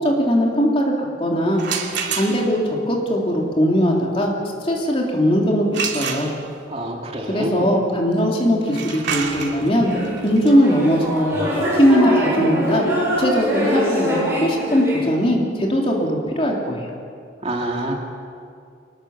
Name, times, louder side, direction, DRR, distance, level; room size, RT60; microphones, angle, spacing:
voice 1, 0.0-1.6 2.1-4.3 4.6-6.3 7.3-9.9 10.2-11.4 11.8-12.9 13.2-16.9, equal, 30° left, -1 dB, 3.3 m, -19 dB
sound 1, 1.5-2.7 5.7-6.8 8.6-14.3, right 6 dB, 80° right, 2.4 m, -30 dB
voice 2, 6.7-7.7 17.4-18.0, right 1 dB, 35° right, 1 dB, 2.4 m, -26 dB
sound 2, 9.7-15.0, equal, 15° right, 7.0 m, -23 dB
23.5 x 20.0 x 7.3 m, 2.3 s
head